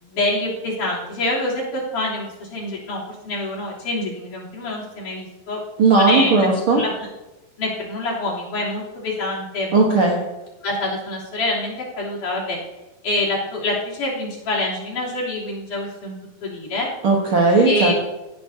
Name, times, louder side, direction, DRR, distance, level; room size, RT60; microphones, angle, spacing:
voice 1, 0.0-5.6 6.0-6.9 7.6-9.7 10.6-12.6 13.0-16.1 16.4-16.9 17.6-17.9, left 2 dB, 60° left, -6 dB, 4.8 m, -26 dB
voice 2, 5.8-6.8 9.7-10.2 17.0-17.9, right 3 dB, 55° right, -1 dB, 1.5 m, -16 dB
17.5 x 11.5 x 2.8 m, 1.0 s
omnidirectional pair, 4.1 m